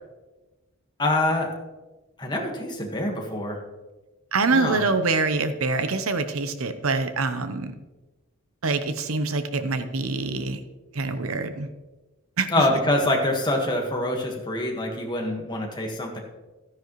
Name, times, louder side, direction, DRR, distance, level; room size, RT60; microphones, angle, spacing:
voice 1, 1.0-1.5 2.2-3.6 4.5-4.8 12.5-16.2, left 1 dB, 20° left, 1 dB, 1.6 m, -25 dB
voice 2, 4.3-7.7 8.6-10.6 10.9-11.7 12.4-12.7, right 3 dB, 75° right, 10 dB, 0.8 m, -25 dB
13.5 x 10.0 x 3.1 m, 1.1 s
head